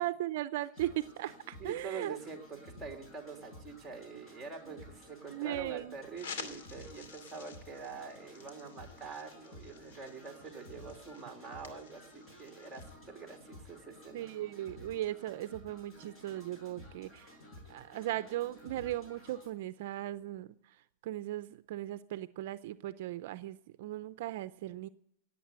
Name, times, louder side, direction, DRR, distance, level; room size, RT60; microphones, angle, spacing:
voice 1, 0.0-2.2 4.7-4.8 5.3-5.9 14.1-17.3 17.7-20.8 21.0-24.9, right 14 dB, 60° right, 13 dB, 0.6 m, -38 dB
sound 1, 0.7-19.5, left 1 dB, 25° left, 6.6 m, -54 dB
voice 2, 1.6-14.3, right 5 dB, 5° right, 3 dB, 3.0 m, -45 dB
sound 2, 6.1-12.9, left 5 dB, 80° left, 2.6 m, -50 dB
18.0 x 8.2 x 8.0 m, 0.78 s
supercardioid pair, 155°, 0 cm